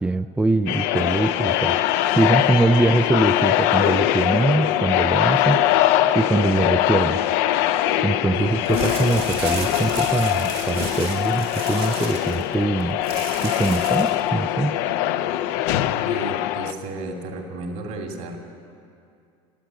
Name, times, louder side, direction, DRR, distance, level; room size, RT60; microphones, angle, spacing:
voice 1, 0.0-1.8 2.1-5.6 6.1-7.2 8.0-13.0 13.4-14.8, right 2 dB, 10° right, 10 dB, 0.4 m, -22 dB
sound 1, 0.7-16.7, left 12 dB, 70° left, 0.6 m, -22 dB
voice 2, 8.3-8.6 16.0-18.4, right 2 dB, 65° right, 2 dB, 2.7 m, -33 dB
sound 2, 8.6-14.3, right 6 dB, 80° right, 3.2 m, -34 dB
15.5 x 10.5 x 9.0 m, 2.5 s
supercardioid pair, 105°, 14 cm